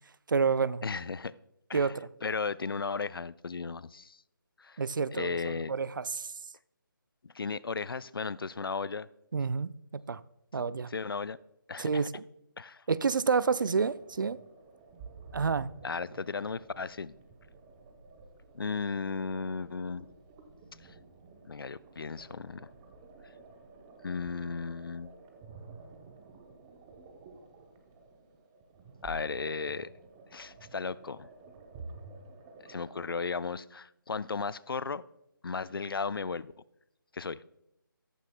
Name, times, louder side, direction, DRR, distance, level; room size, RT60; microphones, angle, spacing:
voice 1, 0.3-0.8 1.7-2.1 4.8-6.3 9.3-10.2 10.5-10.9 11.8-12.2 12.9-14.4 15.3-15.7, right 5 dB, 65° right, 0.5 m, -29 dB
voice 2, 0.8-1.3 1.7-2.0 2.2-4.2 4.6-4.8 5.1-5.7 7.2-9.1 10.9-11.4 11.7-12.1 12.6-12.8 15.8-17.1 18.5-20.1 21.4-22.7 24.0-25.1 29.0-29.9 30.3-31.3 32.6-35.0 35.4-36.5 37.1-37.4, left 4 dB, 80° left, 0.5 m, -35 dB
sound 1, 13.4-33.1, right 3 dB, 15° right, 0.7 m, -51 dB
14.0 x 13.0 x 2.2 m
figure-of-eight pair, 160°, 12 cm